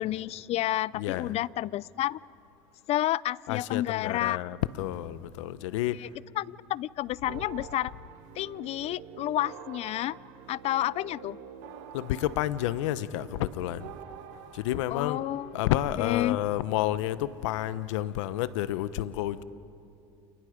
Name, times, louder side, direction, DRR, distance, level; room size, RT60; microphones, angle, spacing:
voice 1, 0.0-2.2 2.9-4.4 5.9-6.1 6.4-7.9 8.4-10.2 10.5-11.4 14.9-15.5 16.0-16.4, left 14 dB, 45° left, 23 dB, 0.5 m, -30 dB
voice 2, 0.9-1.4 3.5-6.0 7.3-7.4 11.9-13.9 14.5-15.2 15.5-19.4, left 13 dB, 80° left, 15 dB, 0.9 m, -30 dB
sound 1, 7.3-16.0, right 8 dB, 70° right, 2.2 m, -47 dB
30.0 x 29.0 x 5.1 m, 2.7 s
supercardioid pair, 110°, 16 cm